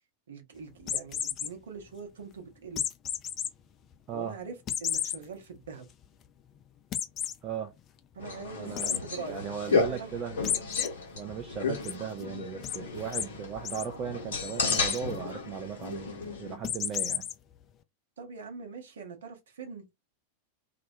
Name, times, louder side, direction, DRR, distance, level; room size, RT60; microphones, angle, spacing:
voice 1, 0.3-2.8 4.1-5.9 8.1-10.2 18.2-19.8, right 5 dB, 65° right, 0.7 m, -43 dB
sound 1, 0.8-1.5 2.8-3.5 3.9-4.0 4.7-5.2 5.7-5.8 6.0-6.1 6.9-7.4 8.8-9.0 10.4-10.9 11.3-11.9 12.6-12.8 13.1-13.3 13.5-13.9 14.6-15.0 16.6-17.3, left 9 dB, 30° left, 0.3 m, -31 dB
voice 2, 7.4-7.7 8.5-9.0 9.3-10.4 11.1-17.3, right 8 dB, 35° right, 0.4 m, -37 dB
sound 2, 8.2-16.5, left 4 dB, 65° left, 0.7 m, -33 dB
2.2 x 2.1 x 2.6 m
figure-of-eight pair, 90°, 0 cm